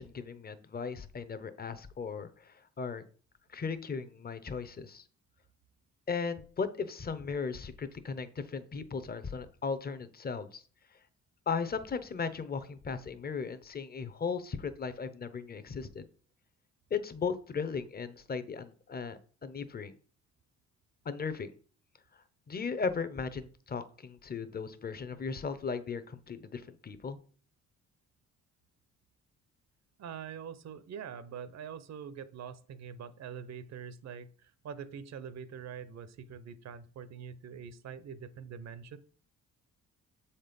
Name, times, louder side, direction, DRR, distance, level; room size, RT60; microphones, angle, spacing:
voice 1, 0.0-3.0 3.5-5.0 6.1-10.6 11.5-16.0 16.9-19.9 21.0-21.5 22.5-27.2, left 5 dB, 30° left, 12 dB, 0.8 m, -37 dB
voice 2, 30.0-39.0, right 7 dB, 60° right, 14 dB, 0.8 m, -44 dB
7.3 x 4.3 x 5.2 m, 0.43 s
cardioid pair, 90°, 30 cm